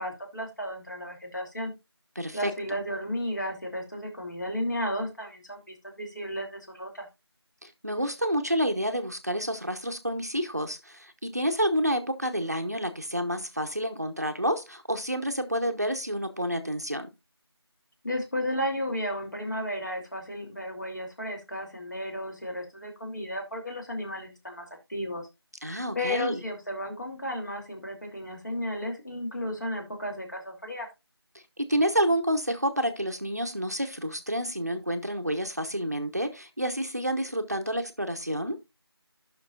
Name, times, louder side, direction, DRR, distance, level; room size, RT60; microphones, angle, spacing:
voice 1, 0.0-1.7 2.3-7.1 18.0-25.3 25.9-30.9, left 1 dB, 45° left, 2.9 m, -33 dB
voice 2, 2.2-2.5 7.6-17.1 25.6-26.4 31.6-38.6, equal, 40° right, 0.8 m, -29 dB
15.0 x 5.9 x 2.4 m
figure-of-eight pair, 175°, 14 cm